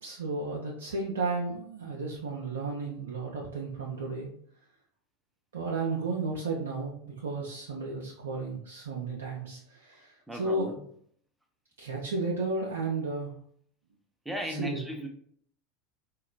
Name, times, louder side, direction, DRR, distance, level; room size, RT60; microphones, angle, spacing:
voice 1, 0.0-4.3 5.5-10.7 11.8-13.3 14.5-14.9, right 3 dB, 70° right, -3 dB, 0.4 m, -33 dB
voice 2, 10.3-10.7 14.3-15.1, equal, 5° right, 2 dB, 0.5 m, -35 dB
3.8 x 2.2 x 2.2 m, 0.62 s
figure-of-eight pair, 80°, 0 cm